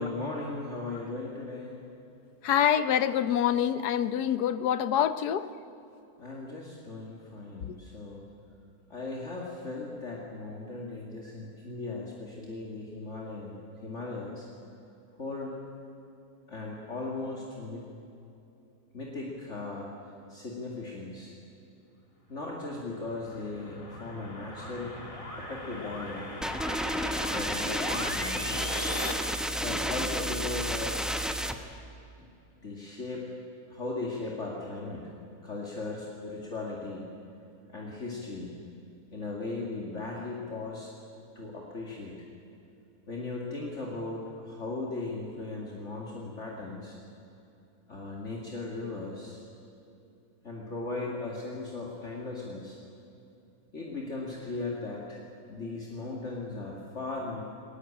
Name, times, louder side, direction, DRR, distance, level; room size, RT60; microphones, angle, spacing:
voice 1, 0.0-1.8 6.2-8.2 8.9-14.5 15.2-15.6 16.5-17.8 18.9-21.3 22.3-24.9 25.3-26.3 27.3-28.5 29.6-31.2 32.2-32.3 32.6-33.2 33.7-35.1 35.4-37.1 37.7-38.5 39.1-40.9 41.4-42.2 43.1-47.0 47.9-49.4 50.4-52.8 53.7-57.4, left 3 dB, 45° left, -3 dB, 2.7 m, -37 dB
voice 2, 2.4-5.5 7.7-7.8, left 9 dB, 80° left, 13 dB, 1.4 m, -26 dB
sound 1, 22.6-29.1, left 1 dB, 20° left, 1.9 m, -39 dB
sound 2, 26.4-31.5, equal, ahead, 0.7 m, -31 dB
20.0 x 19.5 x 8.8 m, 2.8 s
omnidirectional pair, 1.7 m